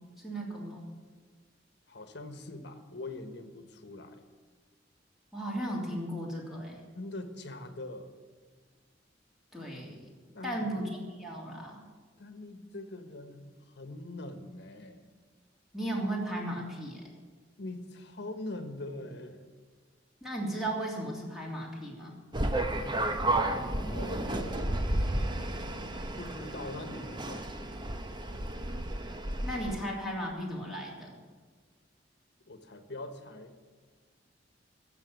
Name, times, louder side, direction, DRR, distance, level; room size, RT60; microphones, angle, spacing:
voice 1, 0.2-0.8 5.3-6.8 9.5-10.1 10.4-11.8 15.7-17.0 20.2-22.2 29.4-31.1, right 1 dB, ahead, -3 dB, 3.1 m, -35 dB
voice 2, 1.9-4.2 6.9-8.1 10.3-10.7 12.2-15.0 17.6-19.5 23.8-24.7 26.2-27.5 32.5-33.5, left 2 dB, 60° left, 7 dB, 1.3 m, -43 dB
sound 1, 22.3-29.8, right 1 dB, 25° right, 0.9 m, -32 dB
14.5 x 7.0 x 9.3 m, 1.5 s
head